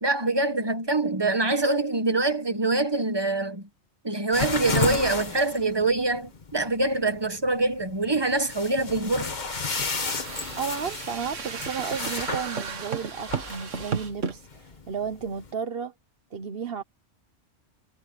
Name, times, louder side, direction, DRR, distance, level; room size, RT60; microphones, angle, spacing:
voice 1, 0.0-3.7 4.0-9.3, right 2 dB, 20° right, 1.4 m, -25 dB
sound 1, 4.3-15.5, left 4 dB, 40° left, 1.4 m, -33 dB
sound 2, 9.5-14.4, right 6 dB, 75° right, 1.8 m, -34 dB
voice 2, 10.6-15.9 16.3-16.8, right 6 dB, 50° right, 1.2 m, -33 dB
omnidirectional pair, 1.3 m